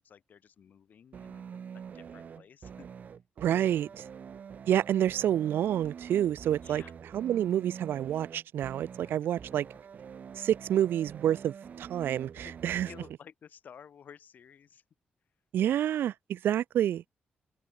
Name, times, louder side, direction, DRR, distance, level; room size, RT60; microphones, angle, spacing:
voice 1, 0.0-1.4 1.9-2.9 3.4-4.2 6.6-6.9 8.9-9.6 12.4-12.5 12.8-14.8 15.7-15.9, left 8 dB, 55° left, 3.6 m, -54 dB
sound 1, 1.1-13.1, right 7 dB, 50° right, 2.3 m, -46 dB
voice 2, 3.4-4.0 4.7-6.8 7.1-9.6 10.4-12.9 15.5-17.0, right 11 dB, 90° right, 0.5 m, -28 dB
wide cardioid pair, 170°, 4 cm